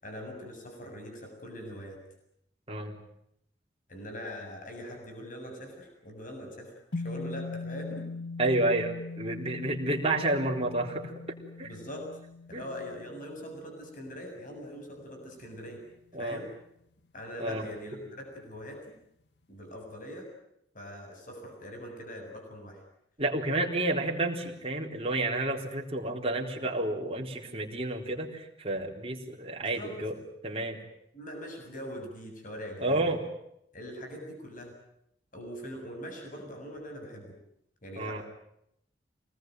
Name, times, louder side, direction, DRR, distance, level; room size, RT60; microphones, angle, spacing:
voice 1, 0.0-2.0 3.9-8.1 11.6-12.2 12.5-15.8 16.1-16.5 17.1-18.9 19.5-20.3 20.7-22.8 29.7-29.9 31.1-33.1 33.7-34.7 35.3-37.4 37.8-38.2, equal, 50° left, 2 dB, 7.1 m, -42 dB
sound 1, 6.9-15.4, left 3 dB, 75° left, 1.4 m, -41 dB
voice 2, 8.4-11.1 11.6-11.7 12.5-12.6 16.1-16.4 17.4-17.6 23.2-30.1 30.4-30.8 32.8-33.2 38.0-38.2, right 2 dB, 35° right, 1 dB, 4.0 m, -30 dB
26.5 x 19.5 x 9.3 m, 0.78 s
head